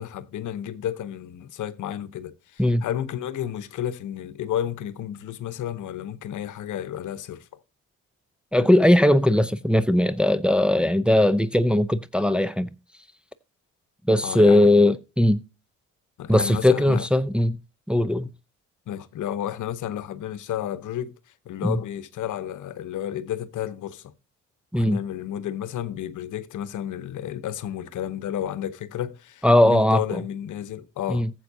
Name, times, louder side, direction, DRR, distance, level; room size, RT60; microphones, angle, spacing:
voice 1, 0.0-7.5 14.2-14.7 16.2-17.1 18.9-21.1 21.5-24.1 24.7-31.3, left 10 dB, 70° left, 0.9 m, -32 dB
voice 2, 8.5-12.7 14.1-15.4 16.3-17.6 17.9-18.3 21.6-21.8 24.7-25.0 29.4-30.2 31.1-31.3, left 1 dB, 5° right, 0.6 m, -19 dB
14.5 x 7.6 x 2.7 m
cardioid pair, 75°, 31 cm